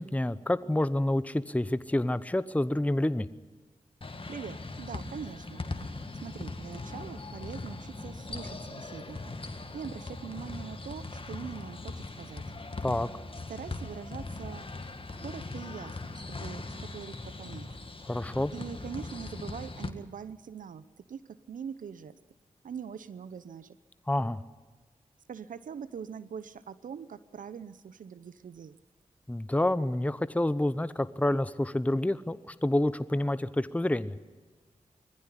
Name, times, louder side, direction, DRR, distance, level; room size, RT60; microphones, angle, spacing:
voice 1, 0.0-3.3 12.8-13.1 18.1-18.5 24.1-24.4 29.3-34.2, left 1 dB, 10° left, 14 dB, 0.9 m, -28 dB
sound 1, 4.0-19.9, left 3 dB, 40° left, 2.0 m, -40 dB
voice 2, 4.3-5.6 6.2-9.2 9.7-12.4 13.5-14.6 15.2-17.7 18.5-22.1 22.6-23.8 25.3-28.8, right 7 dB, 80° right, 15 dB, 0.8 m, -42 dB
20.5 x 15.0 x 9.9 m, 1.3 s
cardioid pair, 40°, 14 cm